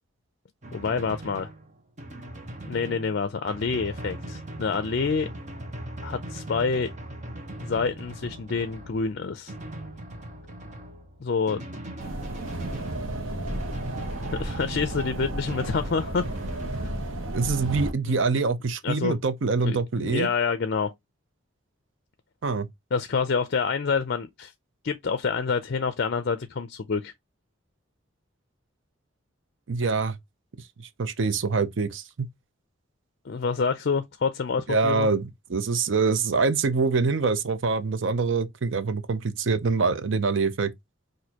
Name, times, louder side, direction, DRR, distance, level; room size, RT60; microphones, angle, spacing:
Drum, 0.6-17.0, right 1 dB, 35° right, 0.9 m, -40 dB
voice 1, 0.7-1.5 2.7-5.3 6.0-6.9 7.6-9.5 11.2-11.7 14.4-16.2 18.1-18.4 18.8-19.2 19.6-20.9 22.9-24.5 24.8-27.1 33.2-35.1, left 5 dB, 55° left, 0.4 m, -27 dB
sound 1, 12.0-17.9, right 1 dB, 85° right, 1.0 m, -33 dB
voice 2, 17.3-20.3 22.4-22.7 29.7-30.2 30.8-32.3 34.7-40.7, right 4 dB, 65° right, 0.5 m, -25 dB
6.1 x 2.6 x 2.8 m
head